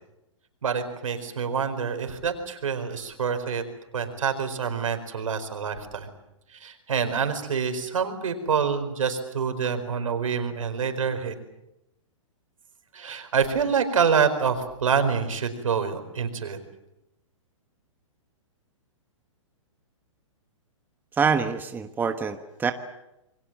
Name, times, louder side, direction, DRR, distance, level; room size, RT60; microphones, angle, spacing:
voice 1, 0.6-3.6 3.9-6.1 6.5-11.3 12.9-16.6, right 6 dB, 80° right, 7 dB, 4.6 m, -26 dB
voice 2, 21.2-22.7, right 6 dB, 10° right, 7 dB, 1.3 m, -25 dB
28.0 x 22.5 x 7.5 m, 0.91 s
hypercardioid pair, 130°, 17 cm